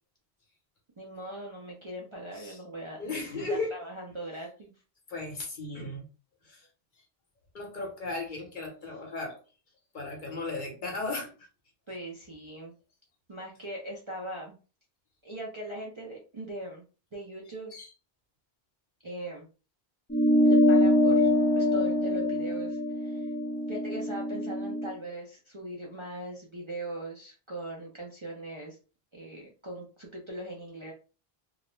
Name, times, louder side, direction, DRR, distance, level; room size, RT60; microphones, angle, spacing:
voice 1, 1.0-3.1 3.4-4.7 11.9-12.7 13.3-14.6 15.2-16.8 17.1-17.7 19.0-19.5 20.4-23.3 23.7-28.8 29.1-30.9, right 1 dB, 40° right, 0.5 m, -40 dB
voice 2, 3.0-3.7 5.1-6.1 6.4-6.7 7.5-9.4 9.9-11.5 17.7-17.9, left 2 dB, 55° left, 0.9 m, -36 dB
sound 1, 20.1-24.9, left 1 dB, 10° left, 0.5 m, -24 dB
2.3 x 2.0 x 3.0 m
omnidirectional pair, 1.0 m